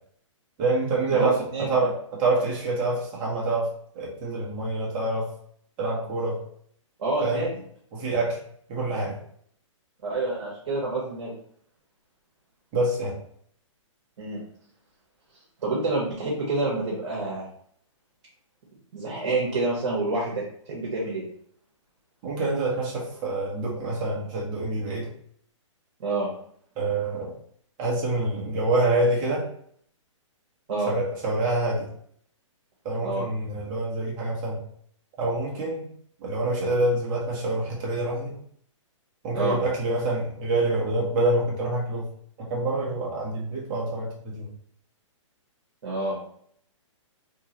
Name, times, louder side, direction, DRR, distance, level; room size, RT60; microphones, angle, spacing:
voice 1, 0.6-3.7 3.9-5.3 5.8-6.4 7.2-7.5 7.9-8.4 8.7-9.2 12.7-13.1 22.2-25.1 26.8-27.3 27.8-29.5 30.9-31.9 32.8-34.6 35.2-35.9 36.2-38.3 39.2-42.1 42.4-44.5, right 2 dB, 30° right, -4 dB, 1.4 m, -26 dB
voice 2, 1.1-1.8 7.0-7.5 10.0-11.3 14.2-14.4 15.6-17.4 18.9-21.2 26.0-26.3 30.7-30.9 33.0-33.2 39.3-39.6 45.8-46.2, right 2 dB, 60° right, -5 dB, 1.4 m, -28 dB
3.6 x 3.1 x 3.0 m, 0.63 s
hypercardioid pair, 135°, 17 cm